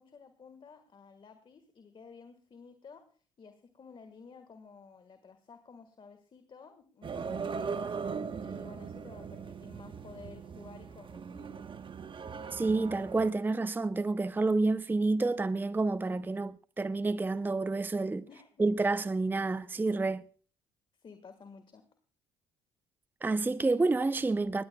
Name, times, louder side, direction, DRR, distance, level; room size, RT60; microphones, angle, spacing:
voice 1, 0.0-3.0 3.4-7.9 8.4-11.7 18.3-18.5 21.0-21.8, left 5 dB, 40° left, 1.5 m, -53 dB
sound 1, 7.0-13.3, right 5 dB, 40° right, 1.0 m, -39 dB
voice 2, 12.5-18.2 18.6-20.2 23.2-24.6, right 3 dB, 15° right, 0.5 m, -29 dB
21.0 x 16.5 x 2.2 m
hypercardioid pair, 65°, 13 cm